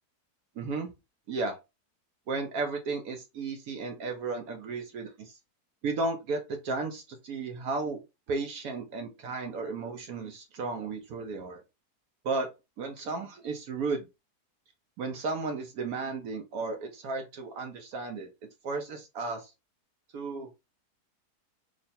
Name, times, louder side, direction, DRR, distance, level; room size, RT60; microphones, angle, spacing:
voice 1, 0.6-0.9 1.3-1.6 2.3-5.4 5.8-8.0 8.3-11.6 12.2-12.5 12.8-14.1 15.0-18.3 18.6-19.5 20.1-20.5, right 3 dB, 70° right, 4 dB, 1.1 m, -34 dB
3.1 x 2.4 x 4.1 m, 0.25 s
omnidirectional pair, 1.7 m